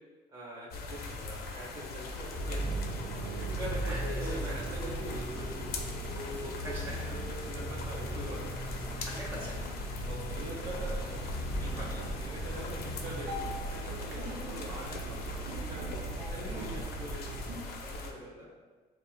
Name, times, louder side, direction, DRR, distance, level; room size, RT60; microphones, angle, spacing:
voice 1, 0.3-2.8 3.6-5.7 6.4-6.8 7.1-8.6 10.0-11.1 11.6-16.0 16.3-18.5, right 1 dB, 25° right, -8 dB, 0.8 m, -44 dB
sound 1, 0.7-18.1, left 3 dB, 65° left, 0.5 m, -42 dB
sound 2, 2.3-17.6, right 1 dB, 85° right, 0.6 m, -37 dB
voice 2, 3.8-4.8 6.2-7.2 9.0-9.7 11.6-11.9 14.2-14.4, right 1 dB, 10° right, -6 dB, 1.3 m, -44 dB
5.4 x 2.3 x 2.2 m, 1.4 s
cardioid pair, 110°, 17 cm